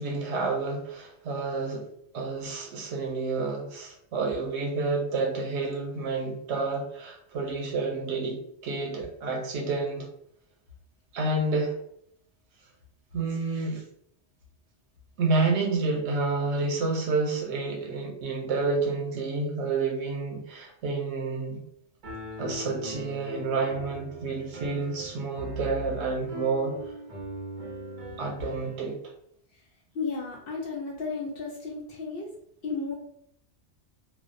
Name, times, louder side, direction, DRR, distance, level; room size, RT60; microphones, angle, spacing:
voice 1, 0.0-1.8 2.1-10.1 11.1-11.8 13.1-13.8 15.2-21.6 22.4-26.8 28.2-29.0, right 3 dB, 90° right, 1 dB, 0.9 m, -29 dB
Piano, 22.0-28.9, right 1 dB, 50° right, 0.7 m, -40 dB
voice 2, 29.9-32.3 32.6-32.9, left 4 dB, 65° left, -1 dB, 0.7 m, -33 dB
2.4 x 2.0 x 2.5 m, 0.70 s
omnidirectional pair, 1.1 m